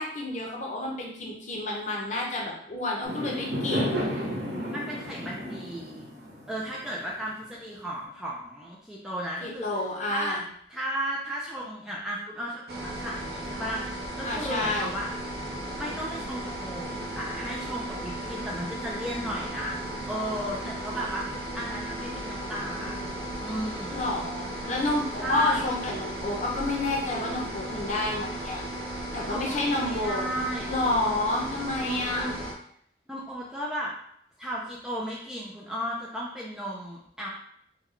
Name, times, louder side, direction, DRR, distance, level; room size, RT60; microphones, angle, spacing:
voice 1, 0.0-4.1 9.4-10.4 14.2-15.0 23.9-28.6 29.1-30.3 30.7-32.3, left 2 dB, 40° left, -2 dB, 0.7 m, -29 dB
Fireworks, 3.0-7.5, equal, 80° right, 1.4 m, -32 dB
voice 2, 4.7-6.0 6.5-9.7 10.1-10.4 10.7-15.1 15.4-19.8 20.0-23.1 23.4-24.0 25.1-25.6 29.3-30.7 31.8-32.3 33.1-33.9 34.4-37.3, equal, 5° right, -5 dB, 0.4 m, -35 dB
sound 1, 12.7-32.5, right 1 dB, 60° right, 0.5 m, -35 dB
3.7 x 2.3 x 3.2 m, 0.68 s
head